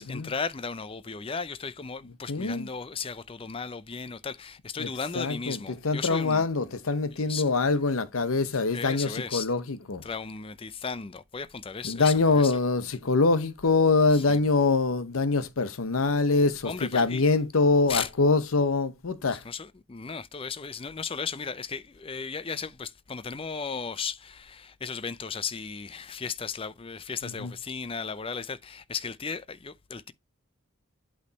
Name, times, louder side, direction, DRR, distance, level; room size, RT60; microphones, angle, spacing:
voice 1, 0.0-6.4 7.1-7.5 8.7-9.5 10.0-12.6 14.1-14.4 16.6-17.2 17.9-18.1 19.3-30.1, left 5 dB, 25° left, 0.5 m, -36 dB
voice 2, 2.3-2.7 4.8-4.9 5.1-10.0 11.8-19.4 27.2-27.5, left 3 dB, 90° left, 0.8 m, -24 dB
8.3 x 3.3 x 4.0 m
head